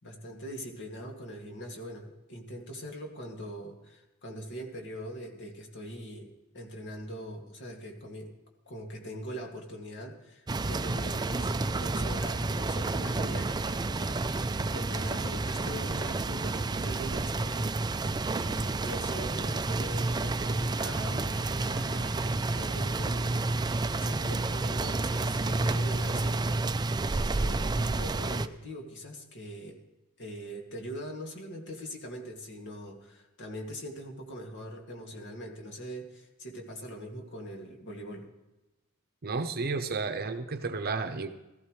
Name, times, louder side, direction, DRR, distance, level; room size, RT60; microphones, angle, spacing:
voice 1, 0.0-8.3 8.7-18.1 18.3-26.8 27.1-29.8 30.2-38.3, equal, 55° left, 1 dB, 2.2 m, -42 dB
sound 1, 10.5-28.5, right 3 dB, 20° right, 0.4 m, -30 dB
voice 2, 39.2-41.3, right 4 dB, 45° right, 8 dB, 0.8 m, -32 dB
18.5 x 14.0 x 3.2 m, 1.0 s
head